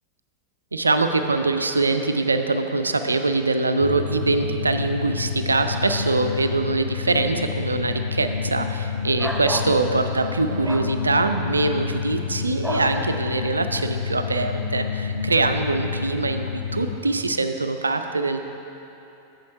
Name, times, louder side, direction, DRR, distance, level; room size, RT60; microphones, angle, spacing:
voice 1, 0.7-16.5 16.7-18.4, right 3 dB, 80° right, 8 dB, 0.4 m, -23 dB
sound 1, 3.8-17.0, left 6 dB, 70° left, 0.6 m, -29 dB
sound 2, 9.2-9.7 10.6-10.9 12.6-12.9, equal, 5° right, 0.6 m, -30 dB
8.3 x 6.4 x 4.6 m, 3.0 s
figure-of-eight pair, 90°, 0 cm